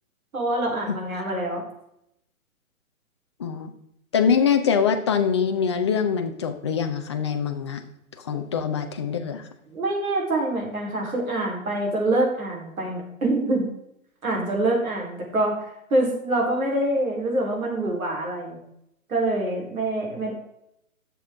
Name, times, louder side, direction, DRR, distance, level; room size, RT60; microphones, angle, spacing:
voice 1, 0.3-1.6 9.7-13.7 14.2-15.6 15.9-18.6 19.1-20.3, right 1 dB, 75° right, -1 dB, 3.7 m, -25 dB
voice 2, 3.4-3.7 4.1-7.8 8.3-9.4, left 7 dB, 20° left, 6 dB, 0.5 m, -23 dB
11.5 x 7.0 x 3.5 m, 0.78 s
hypercardioid pair, 140°, 42 cm